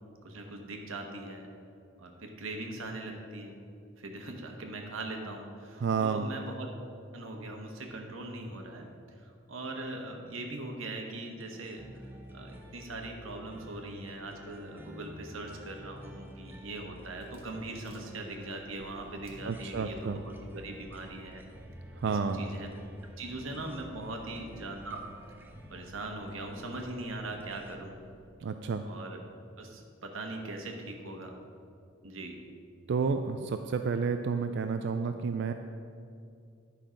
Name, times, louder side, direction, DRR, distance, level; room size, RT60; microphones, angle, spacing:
voice 1, 0.2-1.5 2.0-3.6 4.0-6.7 7.1-8.9 9.2-11.8 12.3-21.4 22.0-22.9 23.2-25.0 25.7-28.0 28.8-29.2 29.6-31.3 32.0-32.4, right 2 dB, 75° right, 3 dB, 1.2 m, -41 dB
voice 2, 5.8-6.3 19.5-20.2 22.0-22.4 28.4-28.8 32.9-35.5, right 5 dB, 60° right, 7 dB, 0.3 m, -30 dB
sound 1, 11.4-27.8, equal, 10° right, 0.6 m, -50 dB
sound 2, 16.9-28.3, equal, 30° right, 1.3 m, -57 dB
11.0 x 5.7 x 5.1 m, 2.4 s
head